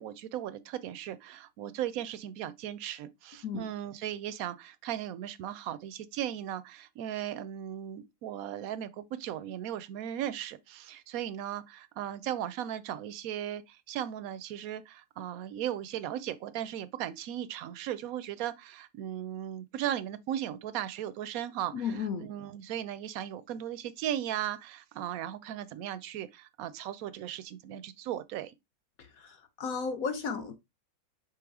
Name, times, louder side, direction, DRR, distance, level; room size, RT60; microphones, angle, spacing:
voice 1, 0.0-28.5, right 11 dB, 75° right, 0.8 m, -37 dB
voice 2, 21.7-22.3 29.0-30.5, left 5 dB, 65° left, 0.9 m, -34 dB
6.2 x 3.3 x 4.8 m
omnidirectional pair, 2.0 m